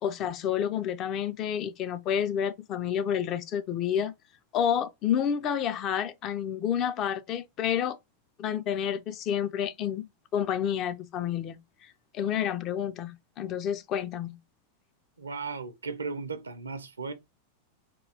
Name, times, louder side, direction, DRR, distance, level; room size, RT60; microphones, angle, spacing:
voice 1, 0.0-4.1 4.5-8.0 8.4-14.4, left 9 dB, 35° left, 0.4 m, -29 dB
voice 2, 15.2-17.1, right 4 dB, 75° right, 0.6 m, -36 dB
3.7 x 2.3 x 3.2 m
figure-of-eight pair, 90°, 0 cm